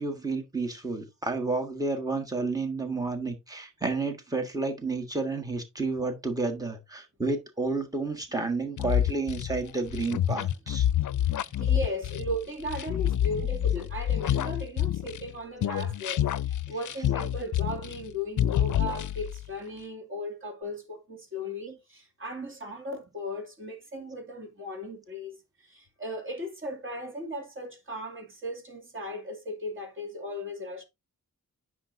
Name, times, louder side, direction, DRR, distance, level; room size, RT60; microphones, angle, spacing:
voice 1, 0.0-10.9 13.4-13.5, right 3 dB, 10° right, 1.5 m, -31 dB
sound 1, 8.8-15.3 15.6-18.1 18.4-19.4, left 11 dB, 65° left, 0.4 m, -28 dB
voice 2, 11.0-16.3 16.7-30.8, left 1 dB, 40° right, 2.6 m, -37 dB
9.9 x 6.2 x 2.7 m
wide cardioid pair, 150°, 33 cm